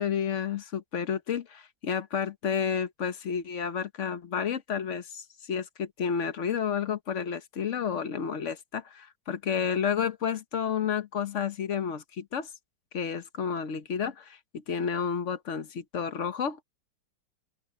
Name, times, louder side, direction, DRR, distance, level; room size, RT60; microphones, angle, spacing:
voice 1, 0.0-12.5 12.9-16.6, left 7 dB, 50° left, 1.1 m, -31 dB
open air
omnidirectional pair, 1.9 m